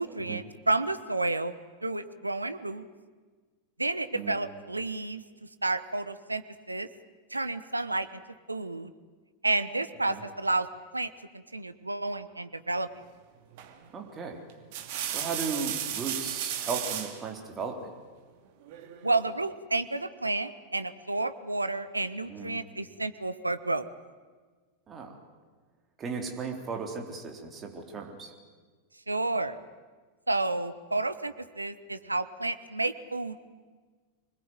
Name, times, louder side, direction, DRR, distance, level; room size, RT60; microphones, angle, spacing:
voice 1, 0.0-1.5 1.8-2.9 3.8-5.2 5.6-6.4 6.7-6.9 7.3-8.1 8.5-8.9 9.4-10.7 10.9-12.9 19.0-23.9 29.1-29.6 30.3-33.5, right 2 dB, 85° right, 12 dB, 1.1 m, -30 dB
sound 1, 13.6-13.9 14.5-17.2 18.7-19.3, right 10 dB, 50° right, 2.6 m, -34 dB
voice 2, 13.9-14.4 15.1-17.9 22.3-22.6 24.9-25.2 26.0-28.3, right 5 dB, 25° right, 3 dB, 3.8 m, -36 dB
25.5 x 20.5 x 9.4 m, 1.5 s
figure-of-eight pair, 90°, 0 cm